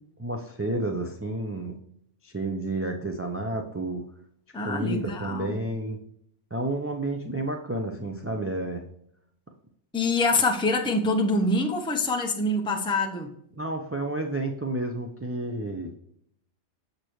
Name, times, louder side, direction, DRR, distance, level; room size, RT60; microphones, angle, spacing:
voice 1, 0.2-1.8 2.2-4.0 4.6-6.0 6.5-8.8 13.6-16.0, right 2 dB, 25° right, 2 dB, 0.3 m, -30 dB
voice 2, 4.5-5.6 9.9-13.3, left 2 dB, 5° left, 1 dB, 0.7 m, -25 dB
6.6 x 6.6 x 3.0 m, 0.70 s
omnidirectional pair, 1.2 m